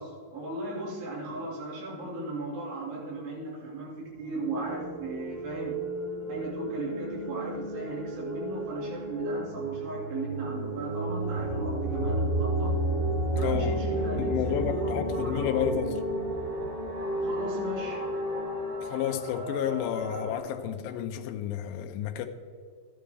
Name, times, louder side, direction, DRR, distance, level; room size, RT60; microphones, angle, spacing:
voice 1, 0.0-5.8 6.3-12.8 13.4-15.9 17.2-18.0, right 2 dB, 85° right, -4 dB, 4.5 m, -37 dB
sound 1, 4.3-20.4, right 1 dB, 65° right, 4.7 m, -32 dB
voice 2, 13.4-13.8 14.2-15.9 18.9-22.3, left 10 dB, 80° left, 5 dB, 2.2 m, -31 dB
12.5 x 10.0 x 3.4 m, 2.1 s
omnidirectional pair, 4.6 m